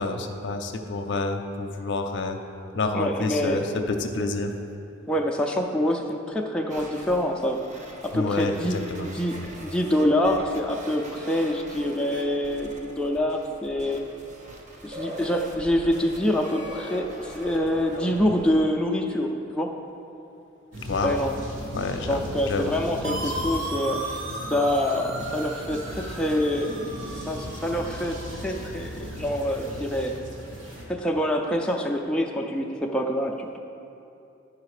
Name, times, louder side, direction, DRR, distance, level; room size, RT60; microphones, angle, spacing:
voice 1, 0.0-2.4 2.7-4.5 8.1-9.1 9.3-9.5 20.8-21.1 21.7-23.5, left 3 dB, 60° left, 5 dB, 0.6 m, -29 dB
voice 2, 2.9-3.6 5.1-7.7 8.0-14.0 14.8-19.7 21.0-21.3 22.1-24.0 24.5-26.8 27.2-28.2 28.4-30.1 30.9-33.6, left 1 dB, 5° left, 0 dB, 0.4 m, -26 dB
sound 1, 6.7-18.6, equal, 35° right, 0.8 m, -41 dB
sound 2, 20.7-30.9, equal, 70° right, 1.6 m, -38 dB
sound 3, 23.0-28.8, right 2 dB, 85° right, 1.1 m, -36 dB
10.0 x 4.9 x 4.9 m, 2.7 s
head